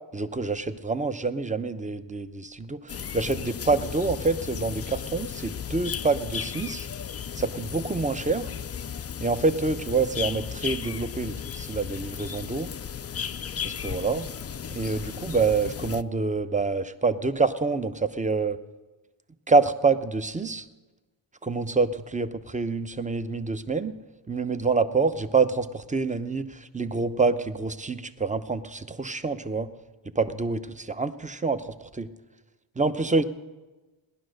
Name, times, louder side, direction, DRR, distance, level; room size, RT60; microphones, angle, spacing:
voice 1, 0.1-6.9 7.4-8.5 9.2-12.7 13.6-14.3 14.7-18.6 19.5-20.6 21.4-24.0 24.3-29.7 30.1-32.1 32.8-33.2, right 4 dB, 15° right, 11 dB, 0.7 m, -26 dB
sound 1, 2.9-16.0, left 8 dB, 35° left, 0.4 m, -35 dB
18.0 x 11.5 x 6.4 m, 1.2 s
wide cardioid pair, 85°, 48 cm